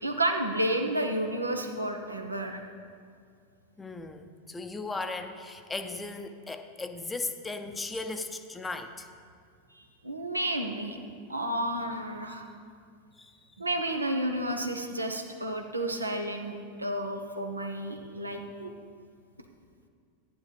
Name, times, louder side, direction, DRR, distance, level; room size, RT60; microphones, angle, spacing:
voice 1, 0.0-2.6 9.7-11.0 11.3-12.5 13.6-18.7, right 1 dB, 85° right, 4 dB, 1.0 m, -31 dB
voice 2, 3.8-9.1 13.2-13.4, left 3 dB, 10° left, 7 dB, 0.7 m, -37 dB
14.5 x 10.5 x 3.4 m, 2.2 s
figure-of-eight pair, 90°, 0 cm